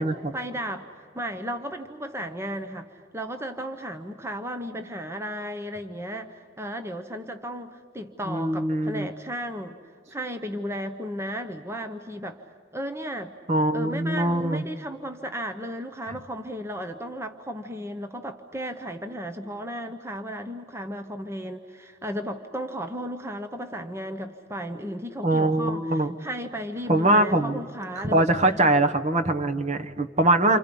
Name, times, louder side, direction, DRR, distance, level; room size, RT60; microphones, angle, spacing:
voice 1, 0.3-9.8 10.1-12.4 12.7-13.3 13.7-28.7, equal, 15° right, 6 dB, 0.8 m, -34 dB
voice 2, 8.2-9.1 13.5-14.6 25.2-26.1 26.9-27.6 28.0-30.6, right 2 dB, 35° right, 8 dB, 1.1 m, -22 dB
29.5 x 26.5 x 5.3 m, 2.2 s
head